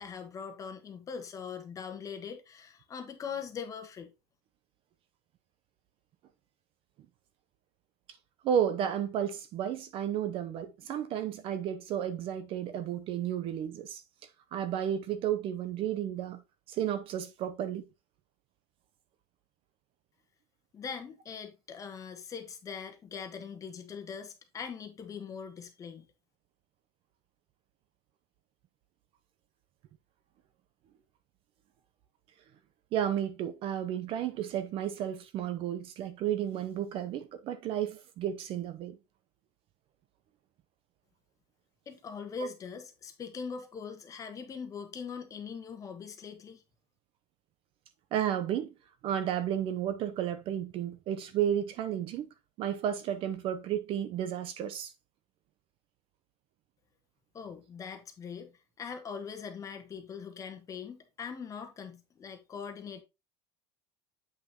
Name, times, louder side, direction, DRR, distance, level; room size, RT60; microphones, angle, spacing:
voice 1, 0.0-4.1 20.7-26.1 41.9-46.6 57.3-63.0, left 6 dB, 25° left, 1.2 m, -41 dB
voice 2, 8.4-14.0 14.5-16.4 16.7-17.8 32.9-39.0 48.1-48.7 49.0-52.3 52.6-54.9, right 10 dB, 40° right, 0.7 m, -32 dB
8.1 x 5.7 x 2.9 m
cardioid pair, 155°, 14 cm